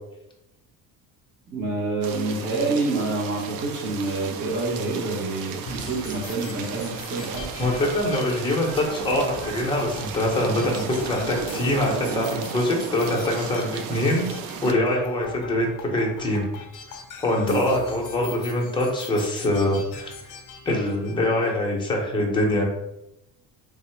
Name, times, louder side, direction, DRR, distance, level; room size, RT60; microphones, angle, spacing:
voice 1, 1.5-7.5 17.3-17.6, right 3 dB, 30° right, -3 dB, 0.9 m, -27 dB
sound 1, 2.0-14.7, right 7 dB, 65° right, 0.5 m, -35 dB
sound 2, 4.4-11.5, right 2 dB, 50° right, 1.0 m, -44 dB
sound 3, 5.7-21.6, left 4 dB, 60° left, 0.8 m, -42 dB
voice 2, 7.6-14.3 14.6-16.4 17.2-20.3 20.6-22.6, left 1 dB, 15° left, -1 dB, 0.7 m, -24 dB
3.6 x 2.0 x 4.3 m, 0.87 s
cardioid pair, 165°, 37 cm